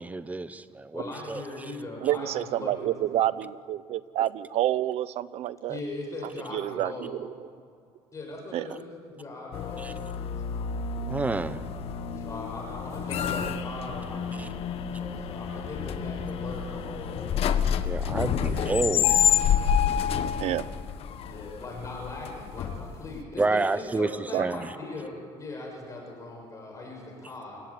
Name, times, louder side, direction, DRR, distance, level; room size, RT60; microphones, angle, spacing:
voice 1, 0.0-1.4 9.8-9.9 11.1-11.6 14.4-14.5 17.8-19.2 23.4-24.1 24.4-24.7, right 3 dB, 15° right, 13 dB, 1.0 m, -29 dB
voice 2, 0.9-2.9 5.7-7.2 8.1-9.9 12.1-14.6 15.0-18.7 21.3-27.6, left 2 dB, 30° left, 0 dB, 6.6 m, -39 dB
voice 3, 2.0-5.8 6.5-7.3 8.5-8.7 20.4-20.6 24.3-24.5, right 13 dB, 65° right, 17 dB, 0.9 m, -28 dB
sound 1, 9.5-23.2, left 8 dB, 60° left, 1.5 m, -28 dB
29.0 x 16.5 x 8.7 m, 2.3 s
cardioid pair, 115°, 11 cm